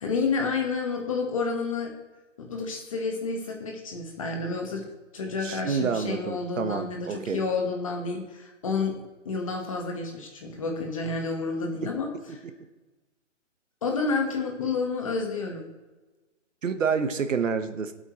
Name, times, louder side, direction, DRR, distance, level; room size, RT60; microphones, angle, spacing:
voice 1, 0.0-1.9 2.4-4.9 5.1-12.1 13.8-15.7, left 4 dB, 25° left, 3 dB, 1.4 m, -30 dB
voice 2, 5.4-7.4 11.8-11.9 16.6-17.9, right 6 dB, 90° right, 9 dB, 1.4 m, -28 dB
22.0 x 8.2 x 3.1 m, 1.2 s
hypercardioid pair, 180°, 37 cm